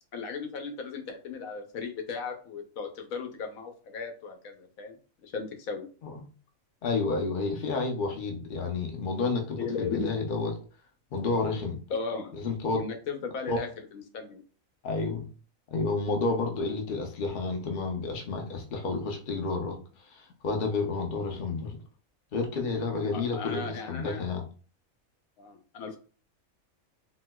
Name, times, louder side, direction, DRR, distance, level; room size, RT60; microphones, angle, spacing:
voice 1, 0.1-5.0 5.2-5.9 9.6-10.1 11.9-12.3 12.7-14.4 23.1-24.2 25.4-26.0, left 5 dB, 80° left, 4 dB, 1.1 m, -36 dB
voice 2, 6.8-10.5 11.1-11.8 12.3-12.8 13.5-13.6 14.8-15.3 15.7-19.8 20.1-21.8 22.3-24.4, left 3 dB, 50° left, 2 dB, 0.7 m, -30 dB
4.2 x 2.1 x 2.2 m, 0.38 s
omnidirectional pair, 1.4 m